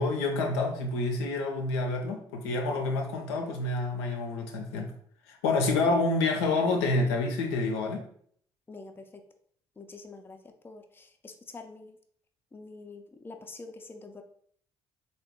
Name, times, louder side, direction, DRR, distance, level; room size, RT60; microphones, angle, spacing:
voice 1, 0.0-4.9 5.3-8.0, left 3 dB, 70° left, 3 dB, 0.5 m, -28 dB
voice 2, 8.7-9.0 9.8-10.4 10.6-11.9 12.5-14.2, left 3 dB, 15° left, 5 dB, 0.5 m, -46 dB
3.6 x 2.2 x 3.5 m, 0.63 s
figure-of-eight pair, 45°, 13 cm